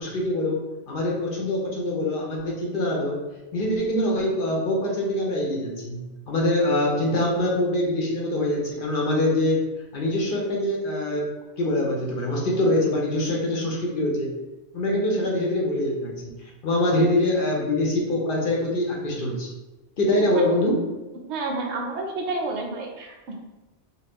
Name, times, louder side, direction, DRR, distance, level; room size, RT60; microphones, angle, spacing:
voice 1, 0.0-3.2 3.5-9.6 9.9-11.3 11.6-14.3 14.7-19.5 20.0-20.8, left 1 dB, 55° left, -2 dB, 0.8 m, -24 dB
voice 2, 21.3-23.3, right 3 dB, 75° right, 1 dB, 0.9 m, -30 dB
2.6 x 2.4 x 3.4 m, 1.1 s
omnidirectional pair, 1.2 m